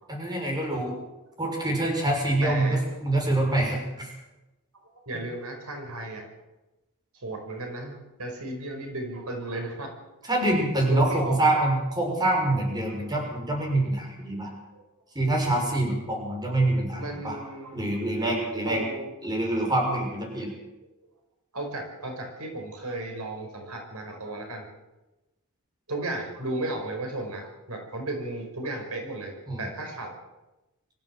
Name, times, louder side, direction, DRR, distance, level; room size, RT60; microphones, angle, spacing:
voice 1, 0.1-0.9 1.4-4.1 10.3-14.5 15.1-17.4 17.7-18.9 19.2-20.5 29.5-29.7, right 1 dB, 20° right, 1 dB, 6.4 m, -25 dB
voice 2, 2.4-2.8 5.1-6.2 7.2-9.9 10.9-11.4 14.7-14.8 16.9-17.8 18.7-19.1 21.5-24.7 25.9-30.1, right 2 dB, 85° right, 3 dB, 5.3 m, -34 dB
24.5 x 15.0 x 7.8 m, 1.0 s
head